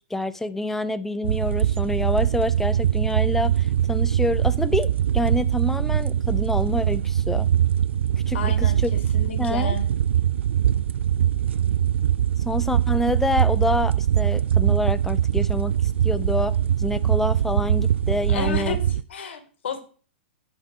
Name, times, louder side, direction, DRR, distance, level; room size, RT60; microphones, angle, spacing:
voice 1, 0.1-4.9 5.1-7.5 8.3-8.9 9.4-9.7 12.5-15.7 16.0-18.8, left 2 dB, 5° left, 13 dB, 0.6 m, -27 dB
sound 1, 1.2-19.0, right 10 dB, 80° right, 0.4 m, -22 dB
voice 2, 8.3-9.8 18.3-18.8 19.1-19.8, left 6 dB, 75° left, 7 dB, 2.1 m, -31 dB
9.4 x 4.1 x 7.0 m, 0.41 s
hypercardioid pair, 125°, 6 cm